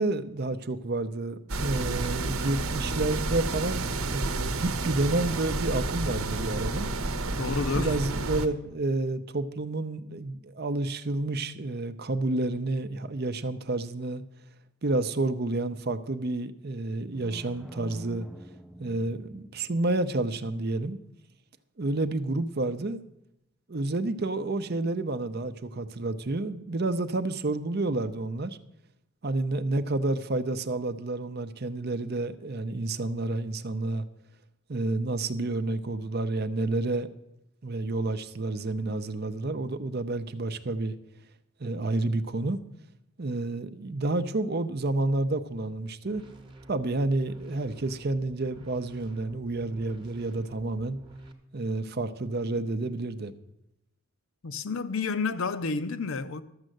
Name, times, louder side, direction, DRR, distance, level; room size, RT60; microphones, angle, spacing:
voice 1, 0.0-6.9 7.8-14.2 14.8-18.3 18.8-21.0 21.8-23.0 23.7-28.6 29.2-34.0 34.7-37.1 37.6-41.0 41.6-42.6 43.2-46.2 46.7-51.0 51.5-53.3, right 2 dB, 45° right, 0.6 m, -30 dB
sound 1, 1.5-8.5, right 2 dB, 75° right, 0.9 m, -30 dB
voice 2, 7.4-8.0 54.4-56.4, left 4 dB, 65° left, 0.6 m, -30 dB
sound 2, 17.0-20.0, equal, ahead, 0.4 m, -46 dB
sound 3, 46.1-51.3, right 1 dB, 20° right, 1.0 m, -49 dB
12.5 x 6.3 x 7.8 m
head